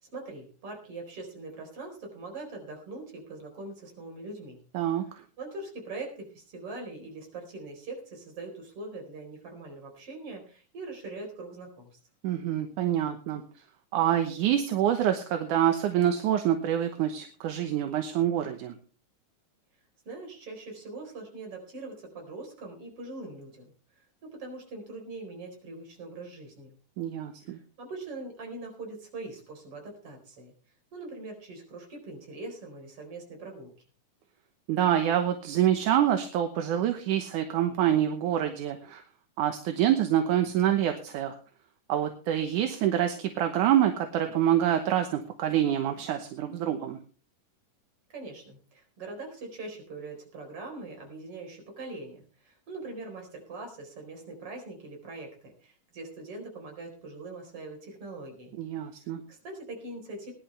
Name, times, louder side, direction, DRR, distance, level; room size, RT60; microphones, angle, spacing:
voice 1, 0.0-4.6 5.4-11.9 20.0-23.7 24.2-26.7 27.4-30.5 30.9-33.7 48.1-58.6 59.3-60.3, right 2 dB, 40° right, 2 dB, 5.1 m, -42 dB
voice 2, 12.2-13.4 13.9-18.8 27.0-27.6 34.7-39.0 39.4-41.4 41.9-47.0 58.6-59.2, right 10 dB, 75° right, 6 dB, 2.4 m, -26 dB
20.5 x 11.0 x 3.3 m, 0.38 s
omnidirectional pair, 3.9 m